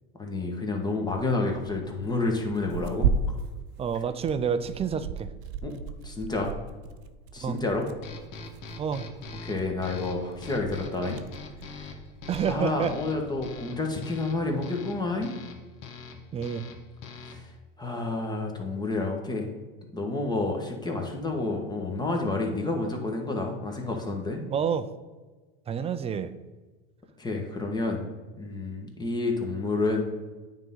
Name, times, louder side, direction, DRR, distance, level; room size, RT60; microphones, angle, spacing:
voice 1, 0.1-3.1 5.6-5.7 6.0-6.5 7.3-7.9 9.4-11.2 11.7-11.9 12.5-15.4 17.2-17.5 17.8-19.5 19.9-24.4 27.2-28.1 28.4-30.0, left 3 dB, 15° left, 2 dB, 1.5 m, -29 dB
Tearing, 1.0-13.6, right 5 dB, 55° right, 0.7 m, -36 dB
voice 2, 3.8-5.3 7.4-7.6 8.8-9.0 12.3-12.9 16.3-16.6 24.4-24.9 25.7-26.3, right 7 dB, 20° right, 12 dB, 0.4 m, -28 dB
sound 1, 8.0-17.6, left 4 dB, 60° left, 1.3 m, -43 dB
9.0 x 3.7 x 5.5 m, 1.3 s
hypercardioid pair, 105°, 29 cm